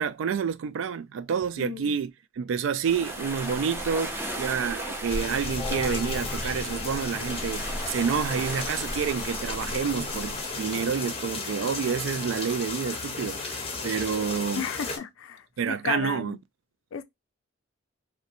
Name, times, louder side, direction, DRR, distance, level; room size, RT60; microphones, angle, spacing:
voice 1, 0.0-14.7 15.6-16.4, right 6 dB, 70° right, 0.3 m, -29 dB
voice 2, 1.6-2.0 14.6-16.4 16.9-17.0, left 6 dB, 80° left, 0.4 m, -34 dB
sound 1, 2.8-10.6, right 1 dB, 10° right, 0.5 m, -35 dB
sound 2, 5.1-15.0, left 4 dB, 30° left, 0.6 m, -35 dB
sound 3, 5.6-11.2, left 3 dB, 10° left, 0.9 m, -41 dB
2.6 x 2.1 x 2.5 m
head